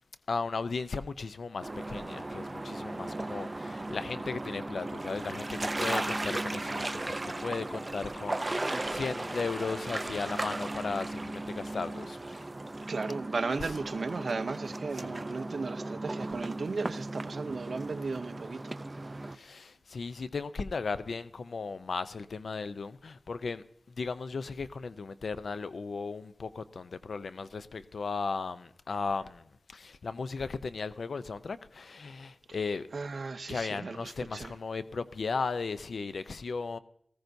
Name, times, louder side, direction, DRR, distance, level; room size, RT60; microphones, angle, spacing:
voice 1, 0.3-12.4 13.6-13.8 14.9-15.2 19.3-32.9 33.5-36.8, left 4 dB, 85° left, 0.5 m, -36 dB
sound 1, 1.6-19.4, right 2 dB, 30° right, 0.5 m, -36 dB
voice 2, 12.9-19.1 32.9-34.5, right 4 dB, 75° right, 0.6 m, -36 dB
18.5 x 14.5 x 2.7 m
wide cardioid pair, 75°, 0 cm